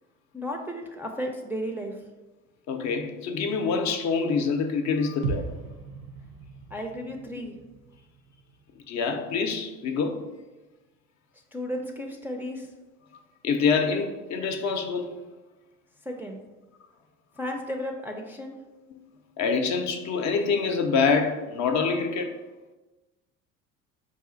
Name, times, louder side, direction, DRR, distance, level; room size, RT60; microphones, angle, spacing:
voice 1, 0.3-2.0 6.7-7.6 11.5-12.7 16.0-16.4 17.4-18.6, equal, 5° right, 0.4 m, -34 dB
voice 2, 2.7-5.5 8.9-10.2 13.4-15.1 18.9-19.0 19.4-22.3, left 5 dB, 50° left, 0.6 m, -26 dB
sound 1, 5.2-9.2 9.5-9.6, right 4 dB, 80° right, 0.7 m, -37 dB
4.1 x 2.4 x 3.8 m
hypercardioid pair, 65°, 38 cm